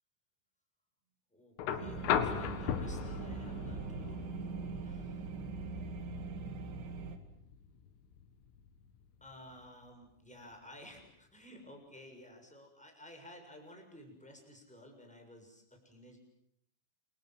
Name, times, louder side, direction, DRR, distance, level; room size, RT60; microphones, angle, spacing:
voice 1, 1.3-5.3 9.2-16.2, left 1 dB, ahead, 2 dB, 6.4 m, -54 dB
sound 1, 1.6-9.6 11.0-11.1, left 8 dB, 75° left, 4.3 m, -39 dB
sound 2, 1.8-7.2, right 4 dB, 65° right, 4.2 m, -42 dB
28.5 x 25.0 x 7.6 m, 0.71 s
omnidirectional pair, 5.9 m